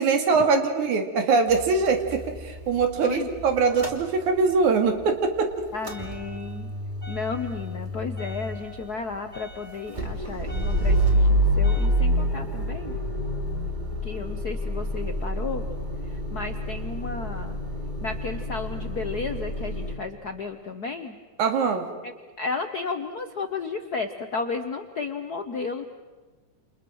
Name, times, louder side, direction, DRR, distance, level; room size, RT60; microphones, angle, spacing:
voice 1, 0.0-5.5 21.4-21.8, right 4 dB, 90° right, 5 dB, 3.6 m, -22 dB
Motor vehicle (road) / Engine starting / Idling, 1.5-4.7 5.0-19.9, equal, 15° right, 2.5 m, -28 dB
voice 2, 5.7-6.7 7.1-12.9 14.0-15.6 16.1-17.6 18.0-21.2 22.0-25.9, left 4 dB, 80° left, 6 dB, 0.8 m, -33 dB
29.0 x 29.0 x 6.3 m, 1.3 s
omnidirectional pair, 3.3 m